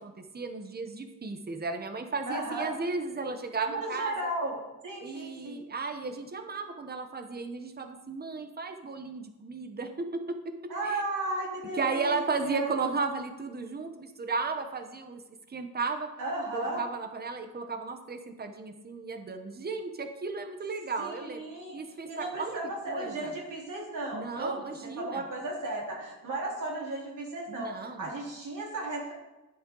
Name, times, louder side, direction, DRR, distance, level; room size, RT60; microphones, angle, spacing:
voice 1, 0.0-4.1 5.0-10.4 10.8-11.0 11.7-15.2 15.5-16.1 16.5-21.4 21.7-22.6 22.9-23.3 24.1-25.2 27.5-28.1, right 4 dB, 25° right, 7 dB, 0.9 m, -34 dB
voice 2, 2.3-2.7 3.7-4.6 4.8-5.6 10.7-12.7 16.2-16.8 21.0-24.6 25.0-29.1, right 2 dB, 60° right, -3 dB, 3.3 m, -35 dB
11.0 x 7.7 x 3.8 m, 1.0 s
wide cardioid pair, 155°, 36 cm